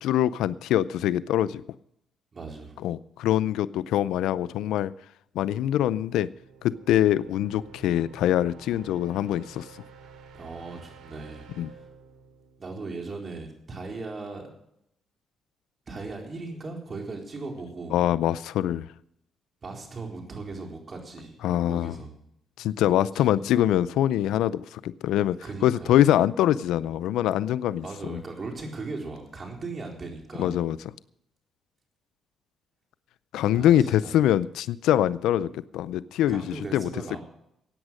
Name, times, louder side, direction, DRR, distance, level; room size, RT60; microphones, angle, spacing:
voice 1, 0.0-1.6 2.8-4.9 5.4-6.3 6.6-9.7 11.6-11.7 17.9-18.9 21.4-21.9 22.6-25.4 25.6-28.2 30.4-30.8 33.3-36.9, left 12 dB, 85° left, 17 dB, 0.4 m, -24 dB
voice 2, 2.3-2.8 10.3-11.5 11.7-11.9 12.6-14.5 15.9-18.0 19.6-21.4 21.7-22.1 23.1-23.4 25.4-26.0 27.8-30.6 33.5-34.1 36.3-37.2, right 3 dB, 35° right, 2 dB, 4.1 m, -38 dB
sound 1, 5.8-13.6, right 5 dB, 80° right, 3.0 m, -51 dB
16.0 x 9.0 x 6.4 m, 0.77 s
cardioid pair, 90°, 0 cm